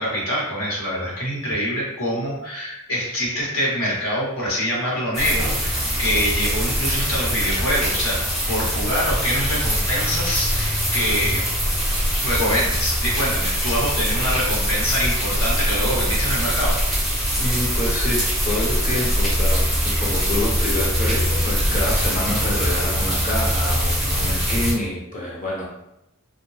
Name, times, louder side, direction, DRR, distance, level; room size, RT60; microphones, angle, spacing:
voice 1, 0.0-11.5 12.1-16.8, equal, 75° left, -5 dB, 0.9 m, -25 dB
sound 1, 5.1-24.7, equal, ahead, 0.6 m, -22 dB
voice 2, 17.4-25.6, left 1 dB, 35° left, -3 dB, 0.7 m, -27 dB
2.6 x 2.1 x 3.1 m, 0.85 s
head